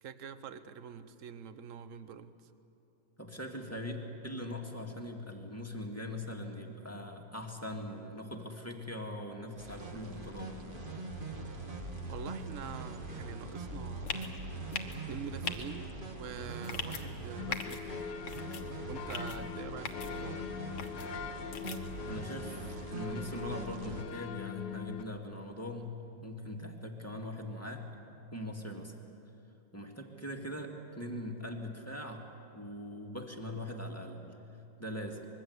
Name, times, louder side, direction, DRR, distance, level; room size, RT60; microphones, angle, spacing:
voice 1, 0.0-2.3 12.1-14.3 15.1-17.9 18.9-20.5, right 7 dB, 60° right, 12 dB, 0.8 m, -45 dB
voice 2, 3.2-10.6 22.1-27.9 28.3-28.9 29.7-32.3 32.5-34.3 34.8-35.3, left 1 dB, 5° left, 1 dB, 1.8 m, -41 dB
sound 1, 9.6-24.0, right 2 dB, 25° right, 1.6 m, -42 dB
sound 2, 14.1-14.3 14.7-15.0 15.4-15.6 16.6-17.0 17.5-17.8 18.3-18.6 19.1-19.4 19.8-20.1 20.8-21.1 21.5-21.8, left 6 dB, 65° left, 2.0 m, -38 dB
sound 3, 17.4-25.0, left 7 dB, 85° left, 1.7 m, -42 dB
25.5 x 21.5 x 8.1 m, 2.9 s
omnidirectional pair, 2.3 m